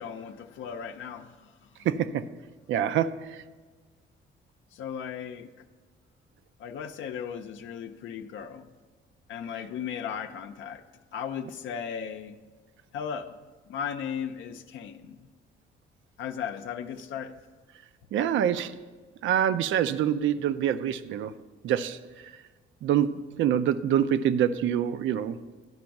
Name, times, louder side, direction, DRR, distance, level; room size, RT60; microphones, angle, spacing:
voice 1, 0.0-1.8 4.7-5.5 6.6-8.7 9.3-10.8 11.1-12.4 12.9-13.4 13.7-15.3 16.2-17.3, left 7 dB, 80° left, 0.5 m, -36 dB
voice 2, 1.8-2.3 2.7-3.4 18.1-18.8 19.2-21.4 21.6-22.4 22.8-25.4, right 9 dB, 75° right, 0.4 m, -26 dB
11.0 x 5.2 x 5.8 m
cardioid pair, 90°, 20 cm